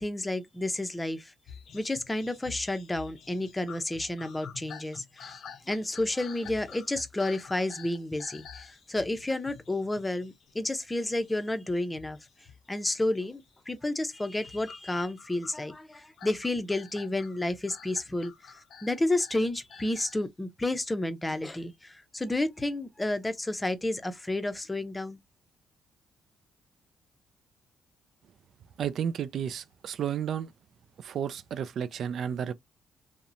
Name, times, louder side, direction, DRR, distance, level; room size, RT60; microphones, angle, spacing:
voice 1, 0.0-1.3 1.7-5.3 5.7-12.2 12.7-18.3 18.8-25.2, left 1 dB, 15° left, 0.6 m, -31 dB
sound 1, 1.5-10.9 11.2-12.9 13.1-13.6 14.2-20.2, left 7 dB, 65° left, 0.6 m, -49 dB
voice 2, 28.8-30.5 31.0-32.5, right 8 dB, 65° right, 0.3 m, -32 dB
2.8 x 2.1 x 2.5 m
cardioid pair, 90°, 0 cm